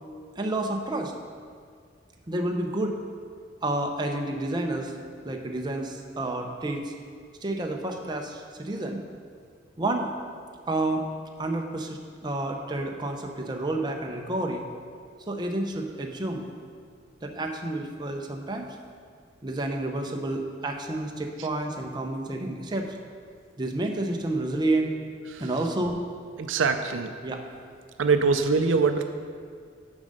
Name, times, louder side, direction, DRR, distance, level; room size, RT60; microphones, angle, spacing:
voice 1, 0.4-1.1 2.3-3.0 3.6-4.9 5.2-6.9 7.4-9.0 9.8-10.1 10.7-11.0 11.4-14.6 15.2-16.5 17.2-18.7 19.4-23.0 23.6-24.9 25.4-26.0 27.2-27.4, right 2 dB, 25° right, 2 dB, 0.6 m, -30 dB
voice 2, 26.4-27.1 28.0-29.0, right 4 dB, 80° right, 7 dB, 0.5 m, -23 dB
7.0 x 5.3 x 6.5 m, 2.1 s
head